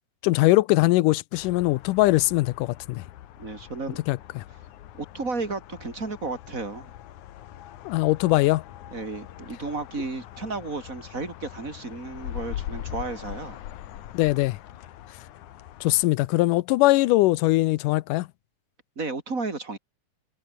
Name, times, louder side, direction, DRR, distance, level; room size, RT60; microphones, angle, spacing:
voice 1, 0.2-3.0 4.1-4.4 7.9-8.6 14.1-14.6 15.8-18.3, left 19 dB, 90° left, 2.2 m, -21 dB
sound 1, 1.3-16.0, left 12 dB, 70° left, 2.6 m, -42 dB
voice 2, 3.4-4.0 4.9-6.9 8.9-13.6 19.0-19.8, right 3 dB, 25° right, 3.8 m, -33 dB
omnidirectional pair, 3.7 m